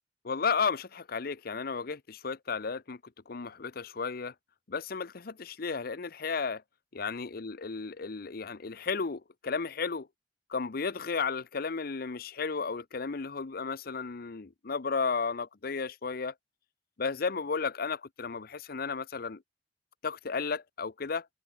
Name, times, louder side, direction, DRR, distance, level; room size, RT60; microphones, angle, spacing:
voice 1, 0.2-3.0 3.3-4.3 4.7-6.6 6.9-10.1 10.5-16.3 17.0-19.4 20.0-21.3, left 5 dB, 55° left, 0.7 m, -33 dB
head